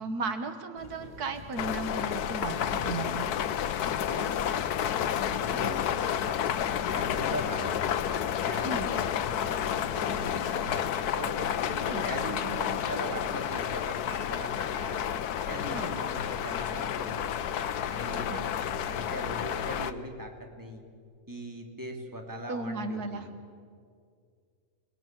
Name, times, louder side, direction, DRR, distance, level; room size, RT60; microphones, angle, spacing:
voice 1, 0.0-3.3 8.6-8.9 11.6-12.6 15.7-15.9 18.3-18.4 22.5-23.3, right 3 dB, 85° right, 8 dB, 1.9 m, -36 dB
sound 1, 0.8-19.7, left 4 dB, 50° left, 2.4 m, -50 dB
sound 2, 1.6-19.9, left 9 dB, 90° left, 1.3 m, -30 dB
voice 2, 5.3-5.9 6.2-6.4 6.9-7.9 8.4-11.6 12.0-15.2 15.5-17.5 17.9-18.5 18.9-20.8 21.3-23.2, equal, 10° right, 2 dB, 2.8 m, -40 dB
29.0 x 20.5 x 7.6 m, 2.2 s
omnidirectional pair, 1.6 m